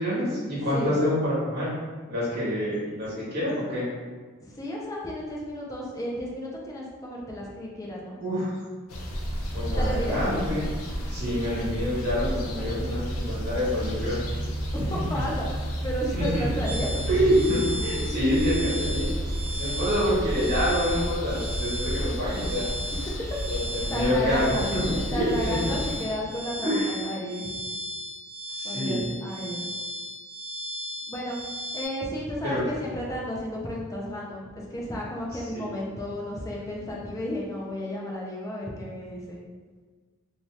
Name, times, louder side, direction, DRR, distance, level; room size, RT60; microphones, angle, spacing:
voice 1, 0.0-1.7 2.1-3.8 8.2-8.5 9.5-10.6 11.1-14.2 16.1-16.5 17.1-19.1 19.6-22.7 23.5-25.7 26.6-26.9 28.6-29.1 32.4-32.6 35.5-35.6, equal, 45° right, -8 dB, 1.2 m, -27 dB
voice 2, 4.4-8.2 9.8-10.2 14.7-15.5 15.8-16.9 22.9-23.3 23.9-24.7 25.1-27.6 28.6-29.7 31.1-31.4 31.7-39.4, equal, 15° left, -3 dB, 0.4 m, -33 dB
sound 1, 8.9-26.0, equal, 80° left, 0.5 m, -31 dB
sound 2, 16.6-31.9, equal, 30° right, 1.1 m, -36 dB
2.7 x 2.3 x 3.1 m, 1.5 s
head